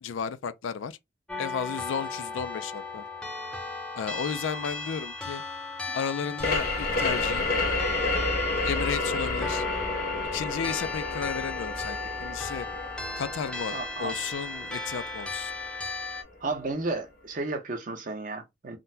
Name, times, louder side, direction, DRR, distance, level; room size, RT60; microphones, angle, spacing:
voice 1, 0.0-1.0 1.4-3.0 3.9-5.4 5.9-7.5 8.6-9.6 10.3-12.7 13.2-15.5, left 7 dB, 85° left, 0.4 m, -33 dB
sound 1, 1.3-16.2, left 3 dB, 5° left, 0.6 m, -36 dB
sound 2, 6.4-15.8, left 2 dB, 50° left, 0.8 m, -30 dB
voice 2, 13.7-14.2 16.4-18.8, right 3 dB, 45° right, 0.7 m, -33 dB
3.7 x 2.2 x 2.6 m
head